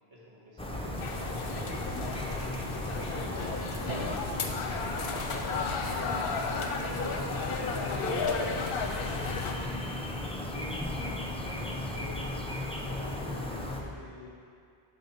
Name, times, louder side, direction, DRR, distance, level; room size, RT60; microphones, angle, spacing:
voice 1, 0.1-1.8 2.3-4.2 4.7-8.3, left 1 dB, 25° right, -7 dB, 1.5 m, -50 dB
sound 1, 0.6-13.8, left 1 dB, 10° left, 0.4 m, -36 dB
sound 2, 1.0-9.5, left 4 dB, 60° left, 0.8 m, -34 dB
Drum, 3.9-6.0, right 4 dB, 55° right, 0.8 m, -45 dB
voice 2, 10.5-12.3 12.7-14.3, left 1 dB, 75° right, -9 dB, 2.5 m, -46 dB
12.0 x 4.1 x 4.4 m, 2.3 s
omnidirectional pair, 1.2 m